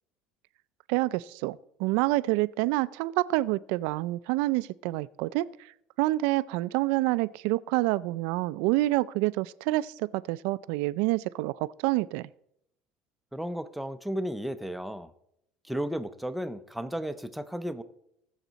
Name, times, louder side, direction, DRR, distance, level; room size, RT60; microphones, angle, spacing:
voice 1, 0.9-5.5 6.0-12.3, right 19 dB, 70° right, 19 dB, 0.4 m, -27 dB
voice 2, 13.3-15.1 15.7-17.8, equal, ahead, 11 dB, 0.5 m, -34 dB
19.0 x 7.3 x 4.0 m, 0.77 s
cardioid pair, 160°, 3 cm